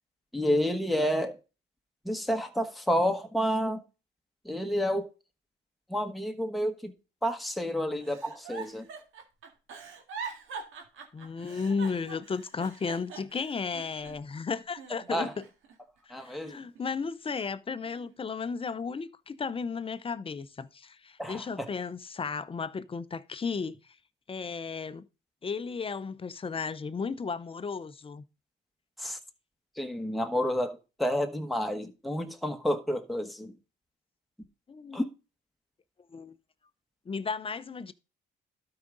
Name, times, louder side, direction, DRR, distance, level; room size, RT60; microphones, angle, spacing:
voice 1, 0.3-1.4 2.0-3.8 4.4-5.1 5.9-6.9 7.2-8.9 15.1-15.3 16.1-16.6 21.2-21.7 29.0-29.2 29.8-33.5 34.9-35.1, equal, ahead, 1.2 m, -30 dB
Giggle, 8.0-14.4 14.8-15.7 16.2-17.3 17.8-18.2, right 5 dB, 80° right, 2.0 m, -44 dB
voice 2, 11.1-15.4 16.1-23.8 24.3-25.1 25.4-28.2 34.7-35.0 36.1-36.4 37.1-37.9, left 5 dB, 25° left, 0.6 m, -34 dB
12.5 x 4.9 x 3.9 m
cardioid pair, 90°, 20 cm